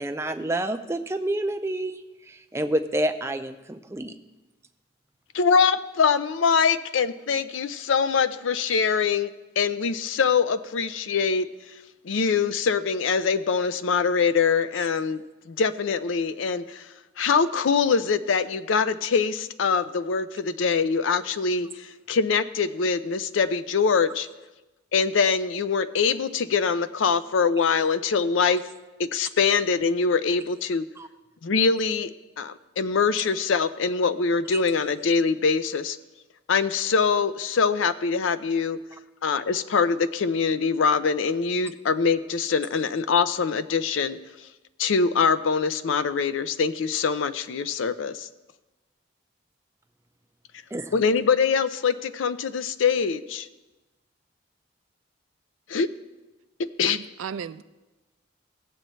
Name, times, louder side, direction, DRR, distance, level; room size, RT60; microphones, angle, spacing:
voice 1, 0.0-2.0 2.3-4.1 31.0-31.1 34.5-34.6 50.7-50.9, right 1 dB, 15° right, 0.4 m, -28 dB
voice 2, 5.3-9.3 9.6-11.5 12.0-15.2 15.5-16.8 17.2-24.3 24.9-28.6 29.0-30.8 31.4-32.1 32.4-36.0 36.5-38.8 39.2-44.2 44.8-48.3 50.9-53.5 55.7-55.9 56.8-57.0, left 5 dB, 75° left, 0.5 m, -23 dB
voice 3, 56.8-57.6, right 7 dB, 85° right, 0.4 m, -35 dB
16.0 x 7.7 x 3.1 m
head